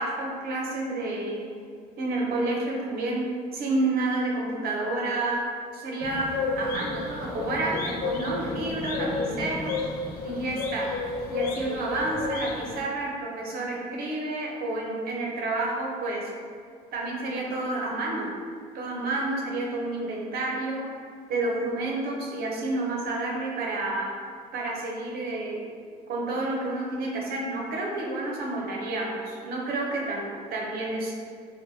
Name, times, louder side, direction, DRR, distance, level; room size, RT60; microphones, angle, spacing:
voice 1, 0.0-1.5 2.0-3.3 3.5-5.4 5.7-9.8 10.2-10.9 11.3-16.3 16.9-18.3 18.7-20.9 21.3-24.1 24.5-25.6 26.1-30.2 30.5-31.2, right 2 dB, 65° right, -2 dB, 0.6 m, -29 dB
sound 1, 6.0-12.8, left 3 dB, 65° left, 0.4 m, -31 dB
3.0 x 2.1 x 2.7 m, 2.1 s
cardioid pair, 110°, 17 cm